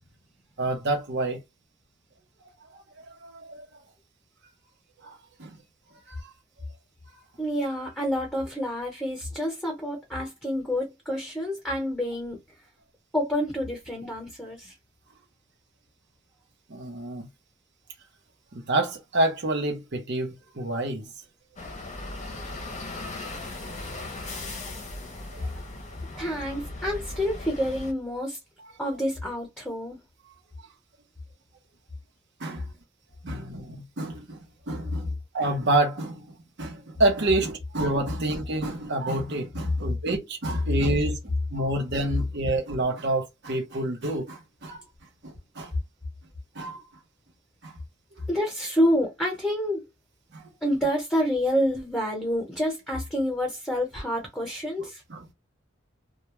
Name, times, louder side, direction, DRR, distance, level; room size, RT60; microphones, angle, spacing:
voice 1, 0.6-1.4 2.7-3.7 5.0-5.6 6.1-6.3 16.7-17.3 18.5-21.1 25.3-25.5 26.1-26.2 32.4-32.7 33.2-34.4 34.7-44.8 45.2-45.7 46.5-46.8 47.6-47.7 50.3-50.5 54.8-55.3, right 2 dB, 60° right, 0.8 m, -28 dB
voice 2, 7.4-12.4 13.1-14.7 26.2-28.4 28.8-30.0 48.3-49.8 50.6-55.0, equal, 5° left, 0.9 m, -28 dB
sound 1, 21.6-27.9, left 2 dB, 40° left, 0.7 m, -38 dB
2.2 x 2.2 x 3.0 m
head